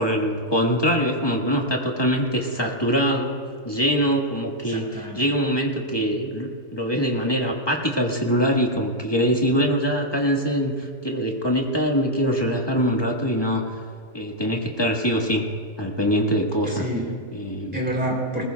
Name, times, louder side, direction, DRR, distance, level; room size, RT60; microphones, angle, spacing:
voice 1, 0.0-3.4 3.6-13.8 14.1-15.4 15.8-16.9 17.3-17.8, equal, 15° left, 0 dB, 1.4 m, -23 dB
voice 2, 4.6-5.3 16.6-17.2 17.7-18.4, right 1 dB, 5° right, -2 dB, 3.1 m, -28 dB
20.5 x 20.0 x 2.3 m, 2.1 s
omnidirectional pair, 1.7 m